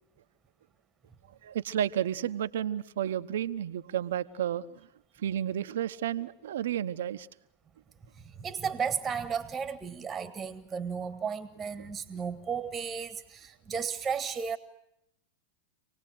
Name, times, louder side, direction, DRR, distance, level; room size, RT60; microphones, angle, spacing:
voice 1, 1.4-4.9 5.2-7.3 11.8-11.9, right 10 dB, 75° right, 12 dB, 1.0 m, -32 dB
voice 2, 8.1-14.6, right 6 dB, 20° right, 10 dB, 1.7 m, -34 dB
27.0 x 19.0 x 7.9 m, 0.79 s
hypercardioid pair, 100°, 0 cm